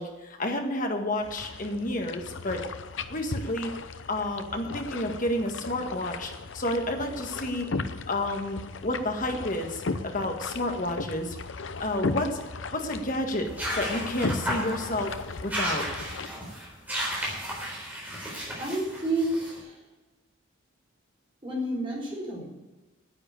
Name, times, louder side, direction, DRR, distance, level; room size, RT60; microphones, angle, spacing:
voice 1, 0.0-2.6 3.1-3.7 4.1-7.7 8.1-11.4 11.8-12.4 12.7-13.5 13.8-15.1 15.4-15.9, left 1 dB, 40° left, 4 dB, 1.7 m, -30 dB
sound 1, 1.2-16.3, left 3 dB, 65° left, 0.7 m, -36 dB
sound 2, 13.4-19.6, equal, 10° right, 4.0 m, -33 dB
voice 2, 18.6-19.8 21.4-22.5, right 1 dB, 25° right, -2 dB, 4.5 m, -30 dB
10.0 x 9.0 x 8.3 m, 1.1 s
head